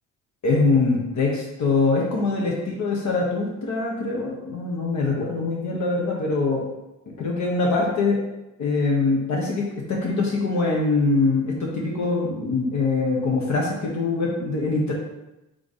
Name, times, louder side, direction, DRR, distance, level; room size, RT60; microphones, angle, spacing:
voice 1, 0.4-6.6 7.1-8.3 8.6-14.9, left 3 dB, 65° left, -2 dB, 1.0 m, -23 dB
3.7 x 3.2 x 4.0 m, 0.95 s
cardioid pair, 90°, 30 cm